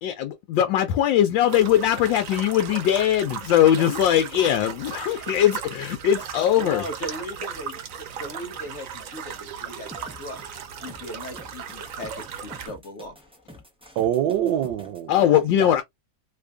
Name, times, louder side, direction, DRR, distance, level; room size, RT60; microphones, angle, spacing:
voice 1, 0.0-6.8 15.1-15.8, left 11 dB, 85° left, 1.3 m, -20 dB
sound 1, 1.5-12.7, right 7 dB, 65° right, 0.8 m, -36 dB
voice 2, 6.6-9.9 10.2-10.4 10.8-13.1, left 1 dB, 65° left, 0.7 m, -37 dB
sound 2, 9.9-15.0, left 1 dB, 5° right, 0.4 m, -46 dB
voice 3, 14.0-15.8, right 11 dB, 85° right, 1.3 m, -26 dB
3.2 x 2.5 x 3.3 m
omnidirectional pair, 2.0 m